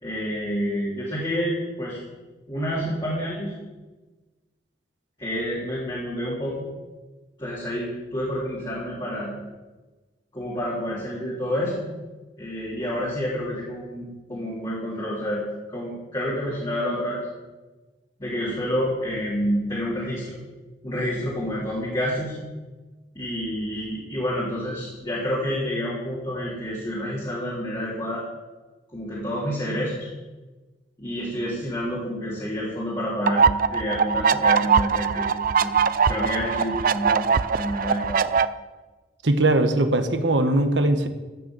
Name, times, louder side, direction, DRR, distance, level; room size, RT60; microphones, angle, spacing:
voice 1, 0.0-2.0 2.5-3.5 5.2-6.7 7.4-9.3 10.3-11.8 12.4-15.4 15.7-17.2 18.2-20.4 20.8-22.4 23.1-28.2 28.9-30.1 31.0-35.7 36.1-37.2 37.5-38.2, equal, 25° left, -8 dB, 3.9 m, -28 dB
sound 1, 33.3-38.4, right 6 dB, 50° right, 0.5 m, -21 dB
voice 2, 39.2-41.1, right 2 dB, 85° right, 8 dB, 1.3 m, -20 dB
15.0 x 6.7 x 7.6 m, 1.2 s
head